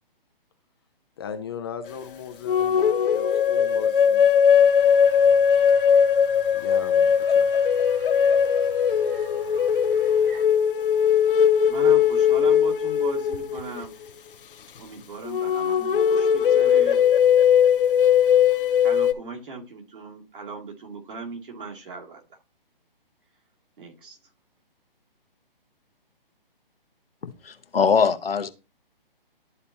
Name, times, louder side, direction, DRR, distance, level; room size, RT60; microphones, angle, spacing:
voice 1, 1.2-4.3 6.5-7.5, left 7 dB, 25° left, 0.5 m, -37 dB
sound 1, 2.5-13.8 15.2-19.1, left 8 dB, 65° left, 0.7 m, -19 dB
sound 2, 4.5-10.4, right 3 dB, 85° right, 4.0 m, -47 dB
voice 2, 11.7-13.9 14.8-17.0 18.8-22.2 23.8-24.2, right 3 dB, 65° right, 2.6 m, -38 dB
voice 3, 27.4-28.5, left 6 dB, 85° left, 1.0 m, -21 dB
12.0 x 4.1 x 2.8 m
hypercardioid pair, 150°, 29 cm